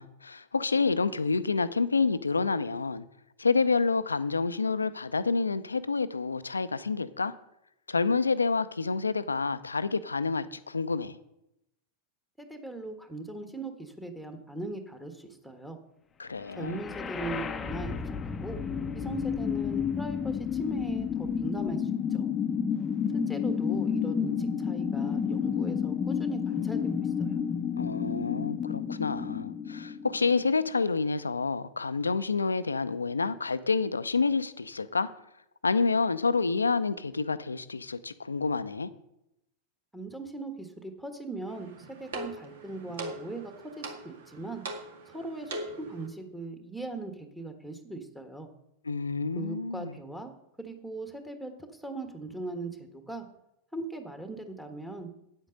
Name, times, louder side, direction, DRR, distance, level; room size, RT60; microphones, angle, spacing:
voice 1, 0.0-3.0 3.4-7.3 7.9-11.2 16.2-16.8 27.8-35.1 35.6-38.9 48.8-49.9, left 4 dB, 75° left, 14 dB, 0.6 m, -28 dB
voice 2, 12.4-15.8 16.5-18.0 18.2-18.6 18.9-22.3 23.1-27.3 39.9-41.7 42.0-44.6 45.1-45.5 45.8-48.5 49.3-50.3 50.6-53.2 53.7-55.1, right 2 dB, 5° right, 6 dB, 1.5 m, -39 dB
sound 1, 16.5-30.5, left 7 dB, 20° left, 0.7 m, -31 dB
sound 2, 41.5-46.1, right 2 dB, 60° right, 1.8 m, -41 dB
9.7 x 8.1 x 6.5 m, 0.83 s
figure-of-eight pair, 90°, 0 cm